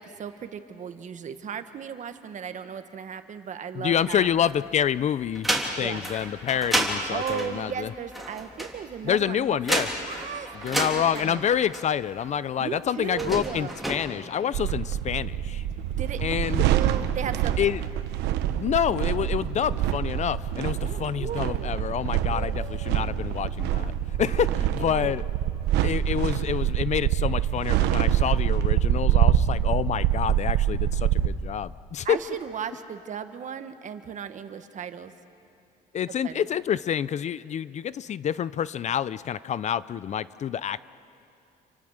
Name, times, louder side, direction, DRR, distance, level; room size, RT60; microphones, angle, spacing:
voice 1, 0.0-4.4 5.8-6.1 7.1-9.6 10.0-11.5 12.6-13.8 16.0-16.2 16.7-17.6 20.8-21.8 22.3-22.9 24.2-25.1 32.0-35.1 36.1-36.4, right 7 dB, 45° right, 9 dB, 1.4 m, -36 dB
voice 2, 3.7-5.5 5.8-7.9 9.0-9.9 10.6-15.6 16.2-16.6 17.6-17.8 18.5-25.3 25.8-32.2 35.9-40.8, left 9 dB, 45° left, 17 dB, 0.5 m, -27 dB
sound 1, 3.9-4.8 5.2-12.3 13.0-14.0, right 1 dB, ahead, 3.3 m, -30 dB
sound 2, 14.5-31.3, right 11 dB, 85° right, 1.0 m, -25 dB
28.5 x 24.5 x 6.5 m, 2.6 s
cardioid pair, 110°, 17 cm